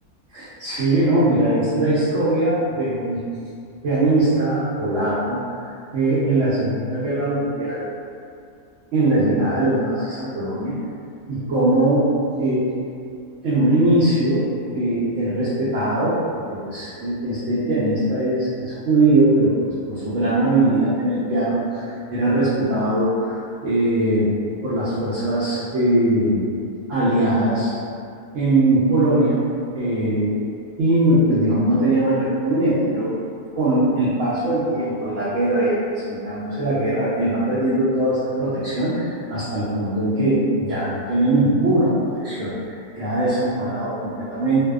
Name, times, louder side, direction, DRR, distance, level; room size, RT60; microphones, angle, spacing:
voice 1, 0.3-3.2 3.8-5.6 5.9-7.8 8.9-10.7 11.3-12.1 12.4-12.7 13.4-14.4 14.7-16.2 16.5-24.4 24.6-26.4 26.9-27.8 28.3-29.4 29.7-30.3 30.8-33.1 33.5-42.5 43.0-44.6, right 1 dB, 70° right, -11 dB, 0.8 m, -20 dB
2.6 x 2.0 x 2.3 m, 2.4 s
omnidirectional pair, 1.7 m